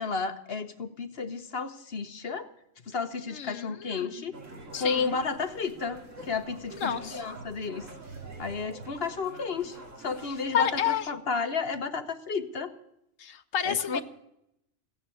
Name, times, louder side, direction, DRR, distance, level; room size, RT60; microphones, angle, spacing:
voice 1, 0.0-2.5 2.9-4.3 4.8-7.8 8.4-12.7 13.6-14.0, left 4 dB, 50° left, 8 dB, 1.2 m, -32 dB
voice 2, 3.3-4.1 4.7-5.1 6.8-7.2 10.5-11.1 13.2-14.0, left 9 dB, 80° left, 8 dB, 1.3 m, -30 dB
sound 1, 4.3-11.0, right 2 dB, 80° right, 2.6 m, -45 dB
16.5 x 9.3 x 8.5 m, 0.80 s
omnidirectional pair, 1.3 m